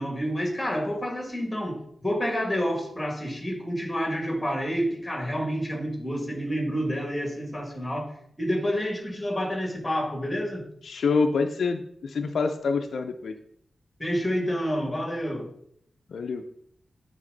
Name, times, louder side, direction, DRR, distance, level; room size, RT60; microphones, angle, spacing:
voice 1, 0.0-8.1 8.4-10.6 14.0-15.5, equal, 15° left, 0 dB, 2.1 m, -29 dB
voice 2, 10.8-13.3 16.1-16.4, left 4 dB, 90° left, 6 dB, 0.4 m, -26 dB
9.7 x 3.6 x 3.9 m, 0.68 s
wide cardioid pair, 105°, 0 cm